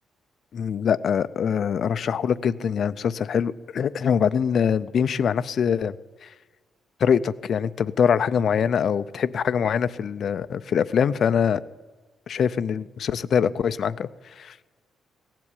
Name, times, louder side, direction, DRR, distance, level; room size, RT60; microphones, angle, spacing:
voice 1, 0.5-6.0 6.2-6.3 7.0-11.6 12.3-14.1 14.4-14.5, left 7 dB, 50° left, 13 dB, 0.4 m, -23 dB
16.5 x 7.5 x 9.8 m, 1.4 s
cardioid pair, 160°, 0 cm